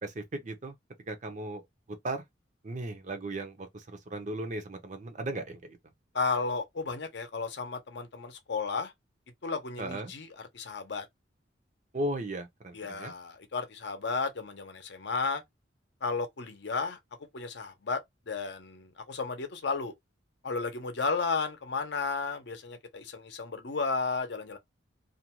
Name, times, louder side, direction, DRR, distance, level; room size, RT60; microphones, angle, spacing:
voice 1, 0.0-0.7 1.1-1.6 2.0-2.2 2.6-5.8 9.8-10.1 11.9-13.1, right 1 dB, 40° right, 0.6 m, -36 dB
voice 2, 6.1-8.9 9.4-10.3 10.5-11.1 12.7-15.4 16.0-17.0 17.3-19.9 20.4-24.6, left 4 dB, 60° left, 0.7 m, -33 dB
2.5 x 2.2 x 2.9 m
head